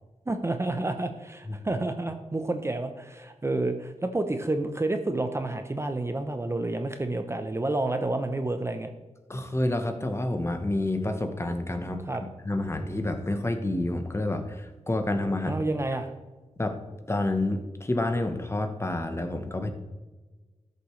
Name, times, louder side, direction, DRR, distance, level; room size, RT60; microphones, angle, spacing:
voice 1, 0.3-8.9 12.1-12.2 15.5-16.1, right 2 dB, 20° right, 7 dB, 0.6 m, -29 dB
voice 2, 9.3-12.0 12.4-15.6 16.6-16.8 17.1-19.7, left 1 dB, 20° left, 7 dB, 0.9 m, -28 dB
12.5 x 6.7 x 3.2 m, 1.3 s
wide cardioid pair, 100°, 12 cm